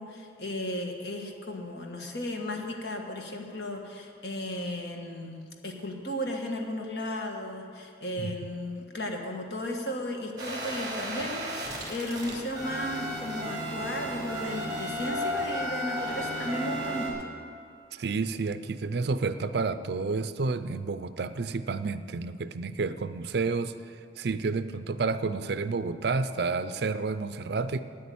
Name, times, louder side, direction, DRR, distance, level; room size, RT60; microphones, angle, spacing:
voice 1, 0.0-5.4 5.6-17.1, left 1 dB, 65° left, 2 dB, 1.5 m, -35 dB
macbook sleeping mode, 10.4-17.1, equal, 20° right, 2.9 m, -34 dB
voice 2, 17.9-23.7 24.2-27.8, right 4 dB, 60° right, 13 dB, 0.5 m, -30 dB
9.8 x 8.6 x 8.6 m, 2.3 s
head